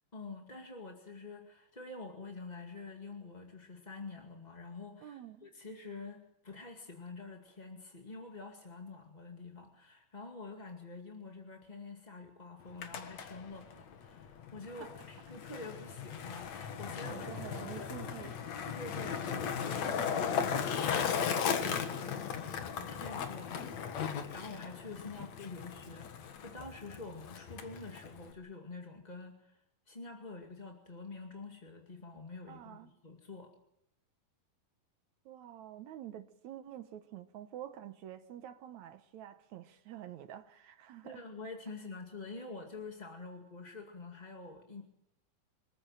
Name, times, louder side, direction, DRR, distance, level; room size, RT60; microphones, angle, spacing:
voice 1, 0.1-17.3 17.7-17.9 18.7-33.5 41.0-44.8, left 3 dB, 20° left, 1.3 m, -47 dB
voice 2, 5.0-5.5 14.8-14.9 17.0-18.5 25.1-25.3 32.5-32.9 35.2-41.2, right 11 dB, 70° right, 1.9 m, -48 dB
Skateboard, 12.6-28.3, left 7 dB, 55° left, 2.5 m, -37 dB
26.0 x 14.5 x 9.1 m
omnidirectional pair, 4.3 m